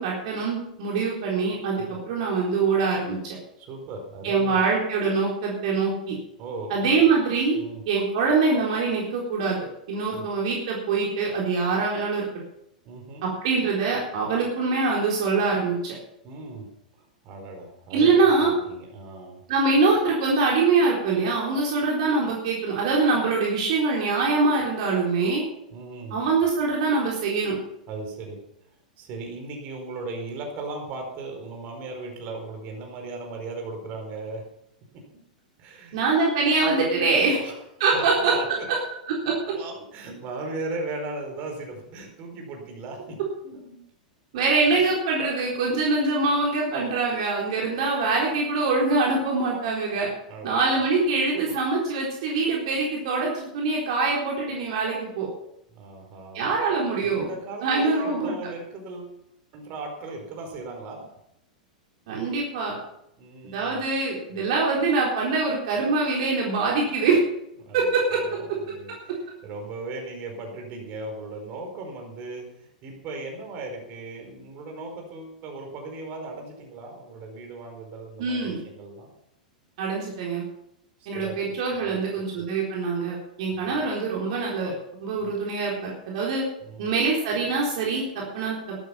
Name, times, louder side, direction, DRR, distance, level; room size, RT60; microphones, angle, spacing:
voice 1, 0.0-3.4 4.2-6.1 6.7-7.6 7.9-9.6 9.9-12.3 13.4-16.0 17.9-18.5 19.5-25.4 26.1-27.6 35.9-37.4 37.8-38.3 39.1-39.3 44.3-50.1 50.4-55.3 56.3-57.3 57.6-58.4 62.1-62.8 63.4-67.2 67.7-68.2 78.2-78.6 79.8-80.4 81.1-84.7 85.0-86.4 86.8-88.8, right 4 dB, 55° right, -3 dB, 4.0 m, -24 dB
voice 2, 3.6-4.6 6.4-6.9 7.5-7.8 10.1-10.2 12.8-13.3 16.2-16.7 16.9-19.4 25.7-26.2 27.9-28.4 29.0-34.4 35.6-36.0 37.3-37.5 37.9-38.7 39.4-43.2 43.4-43.8 50.3-50.9 55.7-56.5 57.0-59.2 59.5-61.1 63.2-63.8 64.3-64.4 67.6-68.4 68.6-79.1 81.0-82.0 82.4-82.5 83.5-83.8 85.2-85.3 86.6-86.9, right 3 dB, 40° right, 2 dB, 4.7 m, -37 dB
13.0 x 12.0 x 5.8 m, 0.78 s
figure-of-eight pair, 95°, 4 cm